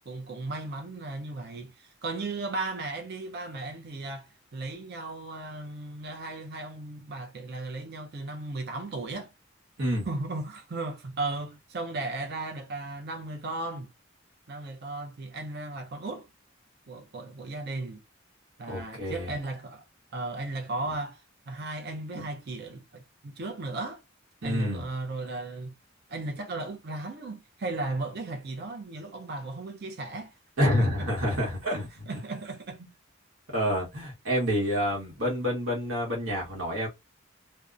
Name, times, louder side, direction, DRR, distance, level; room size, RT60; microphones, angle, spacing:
voice 1, 0.1-9.3 10.1-13.9 14.5-16.3 16.9-18.0 18.6-19.8 20.1-24.0 24.4-25.7 26.1-30.3 30.6-31.1 31.6-32.8, right 2 dB, 55° right, 0.5 m, -36 dB
voice 2, 18.7-19.3 22.1-22.3 24.4-24.8 30.6-31.9 33.5-36.9, equal, 75° right, 1.0 m, -28 dB
2.7 x 2.0 x 2.4 m
head